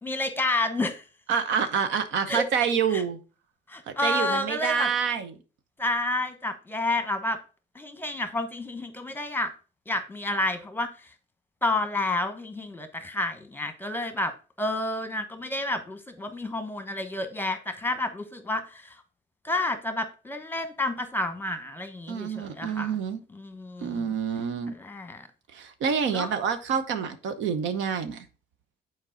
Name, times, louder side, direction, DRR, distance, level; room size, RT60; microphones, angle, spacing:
voice 1, 0.0-1.0 2.3-2.4 2.9-3.0 3.7-4.9 5.8-7.4 7.7-9.5 9.9-10.9 11.6-19.0 19.4-23.0 23.3-24.1 24.7-25.3 26.1-26.3, left 2 dB, 10° left, 1.0 m, -30 dB
voice 2, 1.3-3.2 3.9-5.3 22.1-23.2 23.8-24.7 25.5-28.3, right 7 dB, 80° right, 0.9 m, -27 dB
7.3 x 4.6 x 3.9 m
cardioid pair, 110°, 19 cm